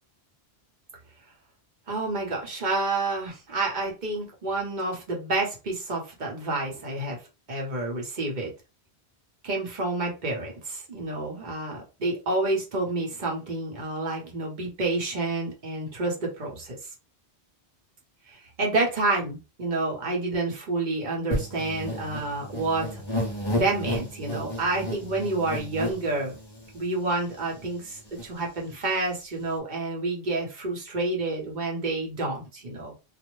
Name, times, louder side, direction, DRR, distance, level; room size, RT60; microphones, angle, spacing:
voice 1, 1.9-7.2 7.5-8.5 9.4-16.8 18.6-23.0 23.5-26.4 26.7-33.0, right 2 dB, 45° right, -1 dB, 0.9 m, -29 dB
sound 1, 21.3-26.9 27.4-27.5 27.7-28.3, left 1 dB, 30° left, 0.6 m, -32 dB
2.4 x 2.0 x 3.0 m, 0.29 s
omnidirectional pair, 1.1 m